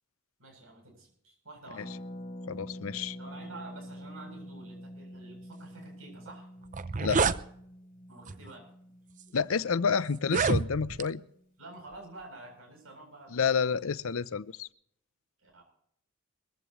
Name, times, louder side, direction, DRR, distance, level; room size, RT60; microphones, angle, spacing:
voice 1, 0.4-1.9 3.2-6.5 8.1-8.7 11.6-13.8 15.4-15.6, right 2 dB, 75° right, 8.0 m, -49 dB
Harp, 1.8-11.4 11.6-11.7 11.9-12.2, equal, 45° left, 3.3 m, -46 dB
voice 2, 2.5-3.2 7.0-7.2 9.3-11.2 13.3-14.7, left 6 dB, 80° left, 0.6 m, -29 dB
sound 1, 6.3-6.4 6.7-7.4 8.3-8.5 9.2-9.3 10.2-11.1, right 4 dB, 40° right, 0.6 m, -28 dB
22.5 x 15.0 x 3.1 m
head